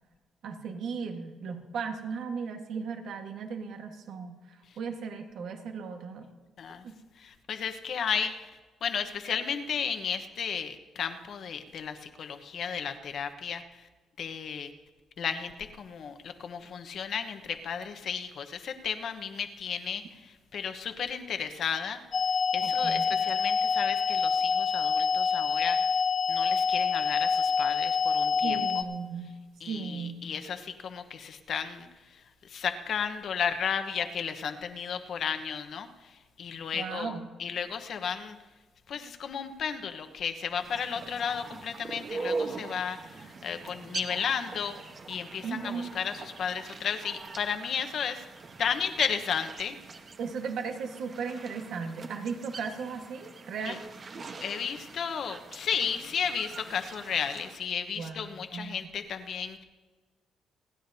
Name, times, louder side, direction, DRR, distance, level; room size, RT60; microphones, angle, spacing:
voice 1, 0.4-6.3 6.8-7.0 22.6-23.0 28.4-29.3 29.7-30.2 36.7-37.3 45.4-45.9 50.2-53.9 57.9-58.9, right 5 dB, 75° right, 4 dB, 1.5 m, -36 dB
voice 2, 7.2-8.3 8.8-13.6 14.2-14.7 15.2-20.0 20.5-22.0 22.5-25.8 26.3-28.6 29.6-31.9 32.5-35.9 36.4-38.4 38.9-44.8 45.1-48.2 48.6-49.8 53.7-53.8 54.4-59.6, left 7 dB, 60° left, 8 dB, 1.1 m, -33 dB
sound 1, 22.1-28.8, left 6 dB, 45° left, 0.7 m, -26 dB
sound 2, 40.5-57.6, right 4 dB, 45° right, 1.1 m, -42 dB
29.5 x 10.0 x 2.8 m, 1.3 s
cardioid pair, 90°, 0 cm